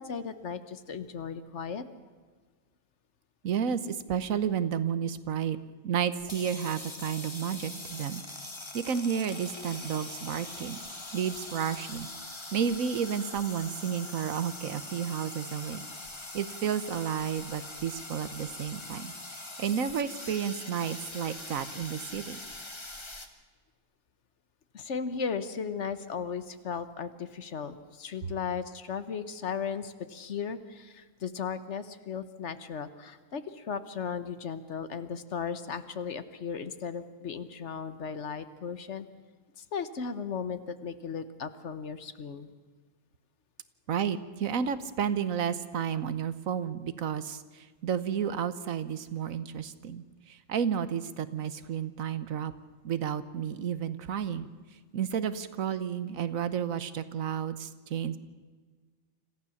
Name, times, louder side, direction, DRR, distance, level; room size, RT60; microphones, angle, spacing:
voice 1, 0.0-1.8 9.7-9.8 24.7-39.1 39.6-42.5, left 6 dB, 60° left, 12 dB, 1.3 m, -36 dB
voice 2, 3.4-5.6 5.8-8.2 8.7-10.8 11.1-12.1 12.5-15.8 16.3-19.1 19.6-22.4 43.9-52.5 52.8-54.5 54.9-58.2, right 8 dB, 85° right, 13 dB, 1.4 m, -31 dB
sound 1, 6.2-23.3, left 2 dB, 20° left, 1.5 m, -42 dB
26.0 x 15.0 x 7.1 m, 1.5 s
omnidirectional pair, 1.4 m